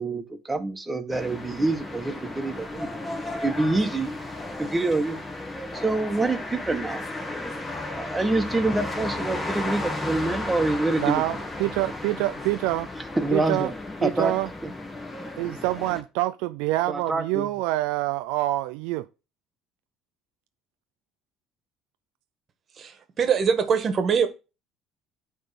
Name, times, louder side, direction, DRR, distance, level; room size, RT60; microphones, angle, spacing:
voice 1, 0.0-2.9 3.4-4.1 4.6-5.2 5.7-7.0 7.5-11.1 13.2-13.7 14.0-14.3 14.6-14.7 16.9-17.5, right 2 dB, 15° right, 1.5 m, -26 dB
sound 1, 1.1-16.0, left 2 dB, 20° left, 1.9 m, -34 dB
voice 2, 11.0-12.9 13.3-13.7 14.0-14.5 15.4-19.1, right 17 dB, 80° right, 0.4 m, -26 dB
voice 3, 22.8-24.3, right 6 dB, 45° right, 1.6 m, -23 dB
9.2 x 3.7 x 5.9 m
supercardioid pair, 75°, 0 cm